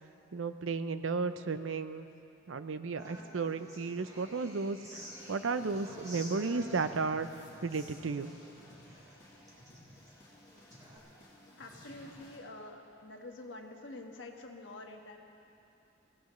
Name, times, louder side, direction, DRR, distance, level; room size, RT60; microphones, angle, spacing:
voice 1, 0.3-2.1 2.5-7.3 7.6-8.3, right 4 dB, 80° right, 11 dB, 0.6 m, -34 dB
Human voice / Acoustic guitar, 3.0-11.0, equal, 20° right, 2.8 m, -51 dB
sound 1, 4.9-12.4, left 1 dB, 20° left, 3.2 m, -56 dB
voice 2, 11.6-15.2, left 2 dB, 65° left, 2 dB, 1.5 m, -47 dB
23.0 x 16.5 x 3.2 m, 2.8 s
head